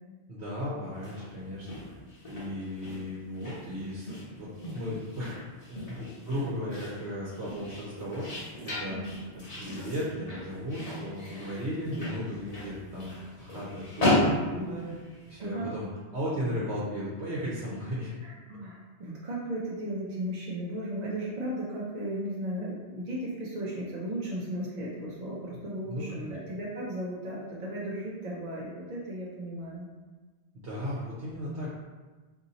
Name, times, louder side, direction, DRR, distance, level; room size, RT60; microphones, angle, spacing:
voice 1, 0.3-1.7 2.2-5.3 5.7-8.3 8.6-9.0 9.3-15.0 15.3-18.1 18.5-18.6 25.5-26.4 30.5-31.7, equal, 65° right, -7 dB, 1.0 m, -36 dB
sound 1, 0.9-15.4, left 1 dB, 35° left, 0.9 m, -35 dB
voice 2, 18.2-29.9, right 1 dB, 50° right, -6 dB, 0.6 m, -35 dB
2.7 x 2.7 x 3.9 m, 1.3 s
omnidirectional pair, 1.2 m